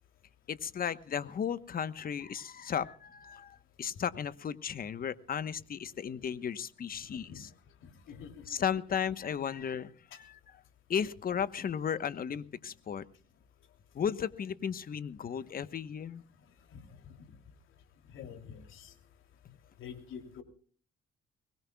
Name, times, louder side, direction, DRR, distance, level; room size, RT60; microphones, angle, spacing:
voice 1, 0.5-7.5 8.5-10.4 10.9-13.0 13.9-16.2 19.4-19.6, left 8 dB, 45° left, 14 dB, 1.1 m, -35 dB
voice 2, 7.1-7.4 8.1-8.5 16.7-16.8 17.1-17.2 18.1-18.9 19.8-20.4, left 7 dB, 70° left, 6 dB, 3.1 m, -46 dB
23.5 x 20.5 x 2.3 m, 0.43 s
cardioid pair, 95°, 21 cm